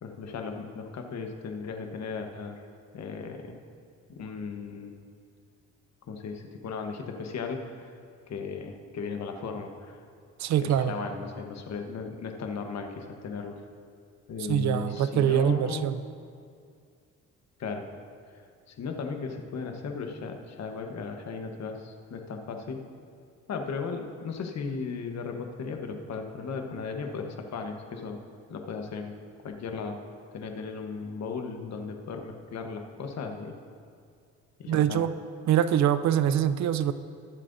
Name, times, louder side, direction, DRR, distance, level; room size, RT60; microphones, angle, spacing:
voice 1, 0.0-2.6 2.9-3.6 4.1-4.9 6.1-8.0 8.3-10.0 10.6-13.6 14.3-15.9 17.6-17.9 18.7-22.8 23.5-28.2 28.5-29.2 29.4-30.0 30.3-33.6 34.6-35.0, left 5 dB, 60° left, 4 dB, 1.1 m, -36 dB
voice 2, 10.4-11.0 14.5-15.9 34.7-35.1 35.5-36.9, right 10 dB, 65° right, 13 dB, 0.5 m, -24 dB
21.0 x 7.4 x 2.6 m, 2.3 s
cardioid pair, 90°, 30 cm